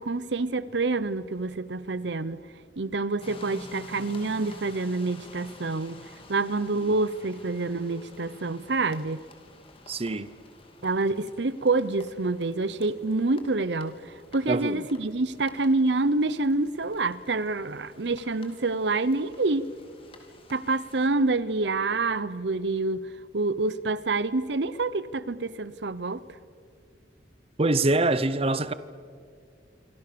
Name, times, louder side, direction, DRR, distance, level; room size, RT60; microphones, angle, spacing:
voice 1, 0.0-2.4 2.8-9.2 10.8-19.7 20.5-26.2, right 3 dB, 75° right, 0.8 m, -27 dB
sound 1, 3.2-21.1, left 2 dB, 30° left, 3.2 m, -51 dB
voice 2, 9.9-10.3 14.5-14.9 27.6-28.7, right 2 dB, 35° right, 0.8 m, -24 dB
27.5 x 24.5 x 6.9 m
head